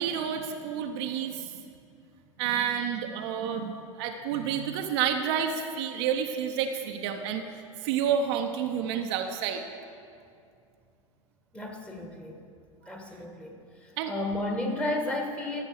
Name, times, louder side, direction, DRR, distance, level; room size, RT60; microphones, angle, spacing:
voice 1, 0.0-1.5 2.4-7.5 7.8-9.6 14.0-14.1, right 8 dB, 55° right, 4 dB, 0.7 m, -29 dB
voice 2, 11.5-12.4 12.9-13.6 14.1-15.6, left 1 dB, 5° left, 2 dB, 1.4 m, -32 dB
14.0 x 6.4 x 4.8 m, 2.4 s
figure-of-eight pair, 85°, 17 cm